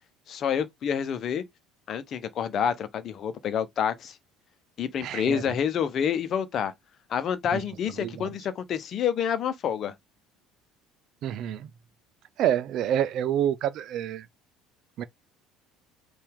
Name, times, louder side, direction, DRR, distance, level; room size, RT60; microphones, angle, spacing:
voice 1, 0.3-1.4 1.9-4.2 4.8-6.7 7.1-9.9, left 8 dB, 45° left, 0.9 m, -28 dB
voice 2, 5.0-5.4 7.5-7.6 8.0-8.3 11.2-11.7 12.4-14.3 15.0-15.1, right 10 dB, 50° right, 0.5 m, -27 dB
5.6 x 2.7 x 3.6 m
figure-of-eight pair, 60°, 0 cm